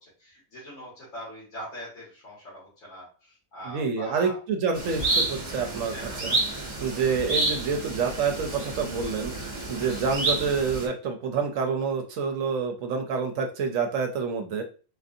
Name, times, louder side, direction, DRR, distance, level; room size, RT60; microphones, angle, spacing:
voice 1, 0.0-4.4 5.9-6.4 9.9-10.0, equal, 70° left, -7 dB, 2.1 m, -42 dB
voice 2, 3.7-6.4 6.8-9.3 9.7-14.6, right 5 dB, 70° right, 4 dB, 0.9 m, -28 dB
sound 1, 4.7-10.9, right 3 dB, 35° right, 1.4 m, -30 dB
4.5 x 2.5 x 2.6 m, 0.37 s
omnidirectional pair, 1.5 m